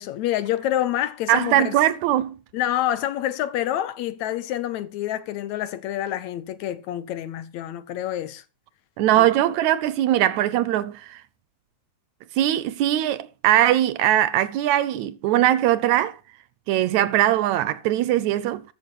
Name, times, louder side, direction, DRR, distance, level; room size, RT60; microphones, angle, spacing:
voice 1, 0.0-1.8 2.5-8.4 9.2-9.3, left 12 dB, 75° left, 2.0 m, -27 dB
voice 2, 1.3-2.4 9.0-11.2 12.4-16.2 16.7-18.6, right 13 dB, 75° right, 1.9 m, -21 dB
13.5 x 6.4 x 5.4 m
omnidirectional pair, 3.6 m